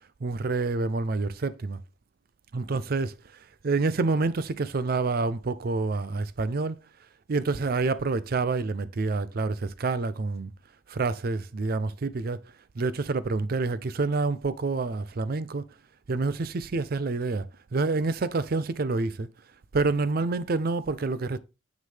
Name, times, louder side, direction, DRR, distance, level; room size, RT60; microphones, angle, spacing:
voice 1, 0.2-1.8 2.5-6.8 7.3-10.5 10.9-15.7 16.1-19.3 19.7-21.4, right 3 dB, 50° right, 0.5 m, -28 dB
7.4 x 6.3 x 3.3 m
head